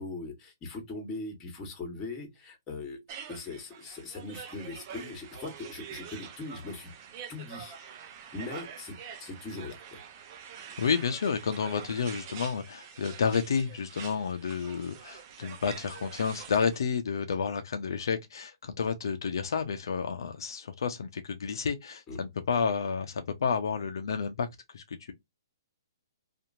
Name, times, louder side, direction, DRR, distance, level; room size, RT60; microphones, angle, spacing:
voice 1, 0.0-6.9 7.3-7.8 8.3-10.0 22.1-22.2, left 3 dB, 20° left, 1.3 m, -40 dB
sound 1, 3.1-16.8, right 8 dB, 40° right, 0.6 m, -46 dB
voice 2, 10.8-25.1, left 6 dB, 70° left, 0.5 m, -30 dB
2.8 x 2.5 x 2.5 m
hypercardioid pair, 145°, 2 cm